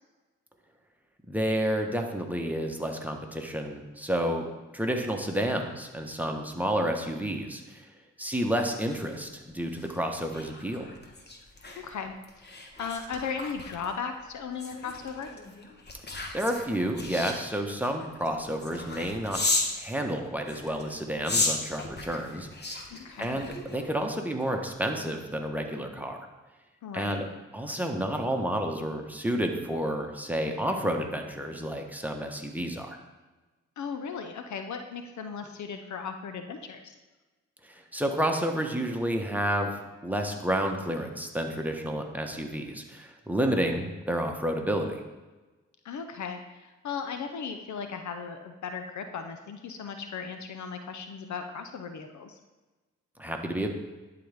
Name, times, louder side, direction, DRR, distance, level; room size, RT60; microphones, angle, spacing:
voice 1, 1.3-4.5 4.7-7.9 8.2-10.8 16.1-19.4 19.8-22.7 23.2-26.2 26.9-27.3 27.5-33.0 37.6-45.0 53.2-53.7, equal, 5° right, 2 dB, 1.3 m, -30 dB
sound 1, 8.6-19.8 20.4-24.0 24.4-24.7, left 2 dB, 35° left, 1.3 m, -35 dB
voice 2, 11.8-12.5 12.8-15.3 22.9-23.3 26.8-27.2 33.8-36.9 45.8-52.4, left 6 dB, 65° left, 7 dB, 0.7 m, -37 dB
11.0 x 3.9 x 3.6 m, 1.2 s
supercardioid pair, 45°, 31 cm